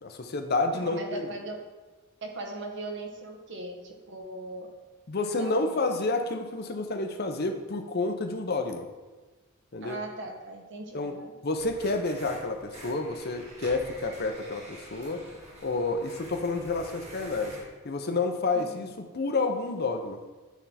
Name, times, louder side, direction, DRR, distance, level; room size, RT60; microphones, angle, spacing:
voice 1, 0.0-1.2 5.1-8.9 9.7-10.0 10.9-11.1 11.4-15.2 15.6-17.6 17.8-20.2, left 3 dB, 50° left, 6 dB, 0.7 m, -29 dB
voice 2, 0.7-1.6 2.2-4.7 5.2-5.9 9.8-11.3 18.5-18.9, right 2 dB, 60° right, 3 dB, 1.0 m, -39 dB
sound 1, 11.6-17.7, right 1 dB, 35° right, 1.7 m, -47 dB
9.1 x 3.5 x 4.2 m, 1.2 s
head